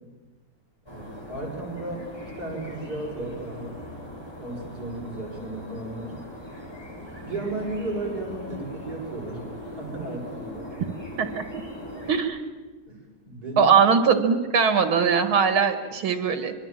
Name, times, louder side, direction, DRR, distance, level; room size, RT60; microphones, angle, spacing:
sound 1, 0.9-12.2, left 1 dB, 10° left, 4.8 m, -40 dB
voice 1, 0.9-3.8 4.4-6.1 7.2-10.7 12.9-13.0 13.3-13.8, right 2 dB, 50° right, -2 dB, 6.9 m, -34 dB
voice 2, 11.2-11.6 12.1-12.4 13.6-16.5, right 6 dB, 85° right, 8 dB, 2.7 m, -21 dB
25.5 x 22.5 x 7.6 m, 1.3 s
omnidirectional pair, 2.2 m